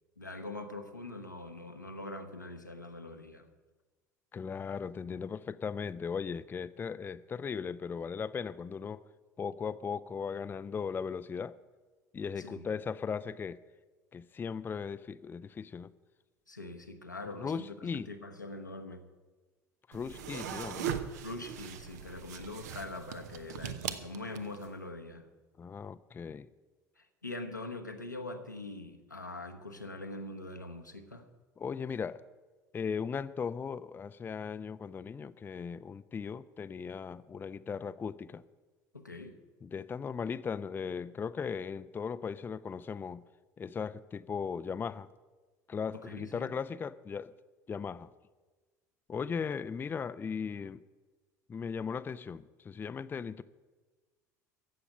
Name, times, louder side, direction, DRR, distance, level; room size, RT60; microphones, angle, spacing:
voice 1, 0.2-3.5 12.4-12.7 16.5-19.1 21.2-25.3 27.0-31.3 38.9-39.4 46.0-46.5, left 2 dB, 90° left, 4 dB, 1.1 m, -43 dB
voice 2, 4.3-9.0 9.4-11.6 12.1-13.6 14.1-15.9 17.4-18.1 19.9-20.9 25.6-26.5 31.6-32.2 32.7-38.4 39.6-43.2 43.6-45.1 45.7-47.3 47.7-48.1 49.1-50.8 51.5-53.4, left 6 dB, 20° left, 14 dB, 0.5 m, -37 dB
sound 1, 19.9-24.7, right 8 dB, 65° right, 0.9 m, -40 dB
15.0 x 7.0 x 8.7 m, 1.3 s
figure-of-eight pair, 65°, 10 cm